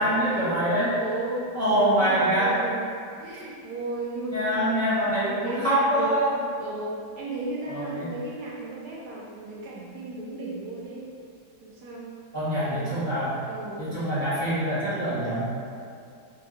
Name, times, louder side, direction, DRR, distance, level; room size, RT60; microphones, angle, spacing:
voice 1, 0.0-0.9 1.5-2.6 4.3-6.3 7.7-8.1 12.3-13.4 13.8-15.5, right 1 dB, 10° right, -12 dB, 1.2 m, -24 dB
voice 2, 1.0-4.8 5.4-11.1 11.6-12.2 12.6-13.0 13.4-13.9, right 2 dB, 75° right, -5 dB, 1.1 m, -35 dB
2.8 x 2.7 x 4.1 m, 2.4 s
omnidirectional pair, 1.8 m